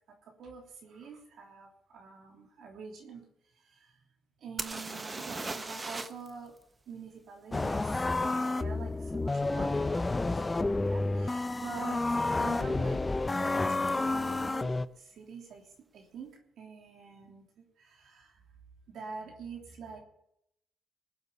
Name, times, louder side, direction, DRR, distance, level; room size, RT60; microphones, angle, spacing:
voice 1, 0.1-3.2 3.5-4.0 4.4-6.5 6.9-12.0 12.4-13.0 13.4-14.7 15.0-18.4 18.9-20.0, right 5 dB, 70° right, 1 dB, 3.1 m, -46 dB
sound 1, 4.6-6.3 6.6-6.7 10.1-10.2 10.8-11.0 11.2-11.8 13.9-14.0 14.2-14.3, right 3 dB, 25° right, 1.0 m, -38 dB
sound 2, 7.5-14.9, left 2 dB, 20° left, 0.6 m, -30 dB
20.5 x 8.1 x 6.8 m, 0.78 s
cardioid pair, 90°, 0 cm